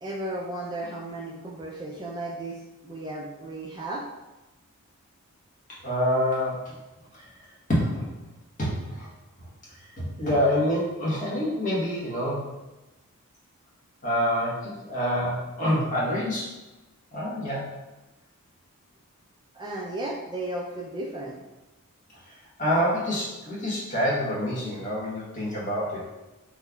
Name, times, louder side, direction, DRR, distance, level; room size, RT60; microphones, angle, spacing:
voice 1, 0.0-4.0 19.5-21.4, right 1 dB, 20° right, -3 dB, 0.3 m, -34 dB
voice 2, 5.8-6.7 7.1-7.2 7.7-8.2 8.6-9.1 10.0-12.4 14.0-16.5 17.1-17.7 22.6-26.0, equal, 35° left, -6 dB, 1.0 m, -26 dB
3.6 x 3.0 x 2.2 m, 1.1 s
head